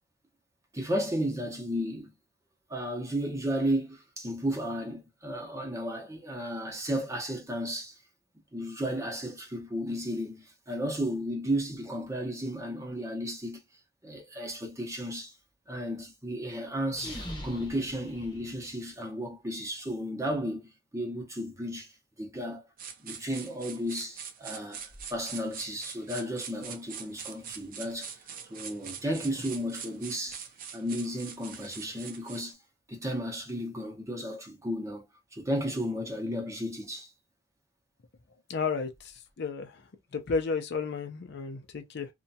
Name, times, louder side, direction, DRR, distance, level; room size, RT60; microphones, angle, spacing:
voice 1, 0.7-2.1 2.7-8.0 8.5-13.6 14.0-15.3 15.7-22.7 23.0-28.2 28.5-30.5 30.7-32.6 32.9-35.0 35.3-37.1, equal, 15° right, 0.7 m, -34 dB
sound 1, 16.9-19.0, left 1 dB, 25° left, 0.8 m, -42 dB
sound 2, 22.8-32.5, right 7 dB, 45° right, 0.4 m, -43 dB
voice 2, 38.5-39.8 40.1-42.1, left 5 dB, 60° left, 0.5 m, -32 dB
2.7 x 2.2 x 2.7 m
head